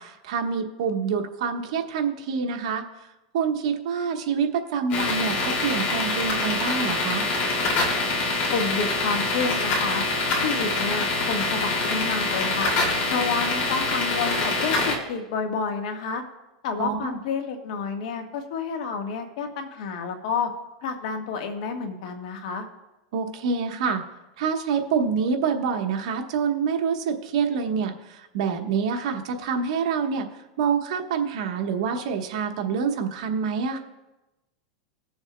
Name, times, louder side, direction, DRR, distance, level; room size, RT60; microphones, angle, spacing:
voice 1, 0.0-2.8 3.3-7.3 16.8-17.2 23.1-24.0 24.4-30.3 30.6-33.8, right 6 dB, 70° right, 4 dB, 1.2 m, -26 dB
sound 1, 4.9-15.0, left 2 dB, 45° left, 2.5 m, -25 dB
voice 2, 8.5-10.0 10.4-12.7 13.1-16.2 16.6-20.5 20.8-22.6, left 5 dB, 65° left, 5 dB, 1.4 m, -29 dB
19.5 x 7.1 x 2.2 m, 1.0 s
supercardioid pair, 155°, 4 cm